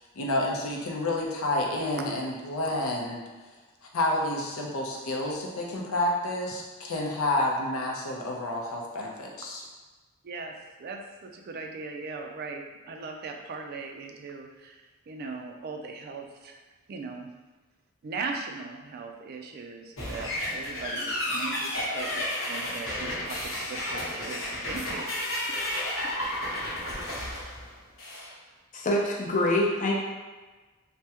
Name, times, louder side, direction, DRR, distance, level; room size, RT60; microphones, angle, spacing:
voice 1, 0.2-3.2 3.9-9.6, left 1 dB, 90° left, -1 dB, 0.6 m, -29 dB
voice 2, 10.2-10.5 10.8-16.6 16.9-17.3 18.0-25.1 26.0-26.1 26.4-26.6, right 4 dB, 50° right, 3 dB, 0.3 m, -39 dB
sound 1, 20.0-28.3, left 1 dB, 65° left, 0.9 m, -32 dB
voice 3, 28.7-29.9, left 1 dB, 35° left, -2 dB, 0.5 m, -25 dB
3.3 x 2.1 x 2.8 m, 1.2 s
head